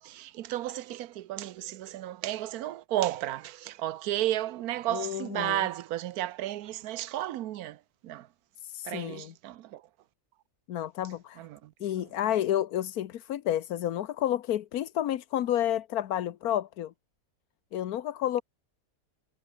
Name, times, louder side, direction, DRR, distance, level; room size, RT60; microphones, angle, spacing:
voice 1, 0.0-8.3 8.8-9.8 11.4-11.7 12.0-12.1, right 13 dB, 90° right, 1.2 m, -33 dB
voice 2, 4.9-5.7 8.6-9.3 10.7-11.5 11.8-16.9 17.7-18.4, left 11 dB, 90° left, 1.3 m, -30 dB
omnidirectional pair, 1.5 m